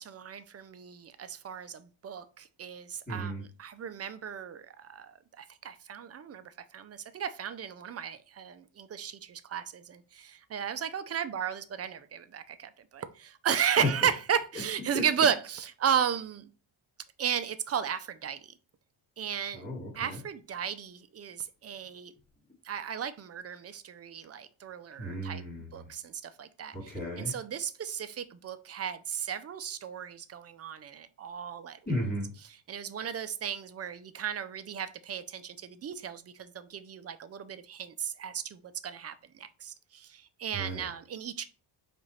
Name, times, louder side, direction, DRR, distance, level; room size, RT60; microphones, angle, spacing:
voice 1, 0.0-3.3 3.6-16.5 17.2-18.5 19.2-19.6 20.0-22.1 22.6-25.4 25.7-26.9 27.2-31.8 32.7-41.4, right 8 dB, 30° right, 0.5 m, -34 dB
voice 2, 3.1-3.4 14.9-15.1 19.5-20.2 25.0-25.7 26.7-27.3 31.9-32.3 40.5-40.9, equal, 20° left, 2.6 m, -35 dB
4.9 x 2.5 x 4.2 m
cardioid pair, 100°, 47 cm